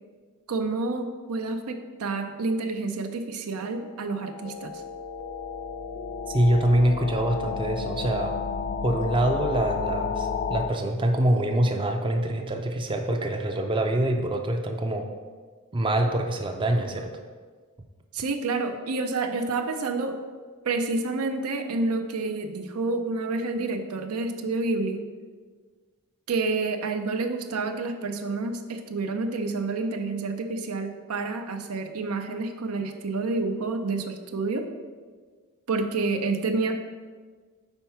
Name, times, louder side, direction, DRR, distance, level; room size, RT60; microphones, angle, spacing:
voice 1, 0.5-4.8 18.1-20.2 20.6-25.1 26.3-34.7 35.7-36.7, right 3 dB, 85° right, 6 dB, 0.6 m, -29 dB
sound 1, 4.0-10.7, left 5 dB, 45° left, 0.3 m, -32 dB
voice 2, 6.3-8.3 8.8-15.1 15.7-17.1, right 1 dB, 25° right, 4 dB, 0.4 m, -25 dB
4.5 x 4.4 x 5.6 m, 1.5 s
head